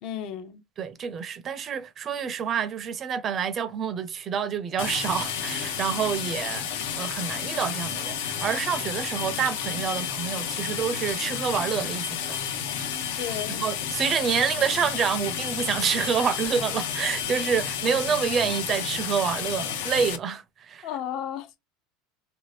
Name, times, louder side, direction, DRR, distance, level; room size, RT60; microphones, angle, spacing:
voice 1, 0.0-0.6 13.2-13.6 20.8-21.6, left 9 dB, 50° left, 0.5 m, -33 dB
voice 2, 0.8-12.5 13.1-20.9, right 7 dB, 30° right, 0.4 m, -28 dB
sound 1, 4.8-20.2, left 8 dB, 85° left, 0.7 m, -31 dB
2.8 x 2.5 x 3.2 m
supercardioid pair, 150°, 0 cm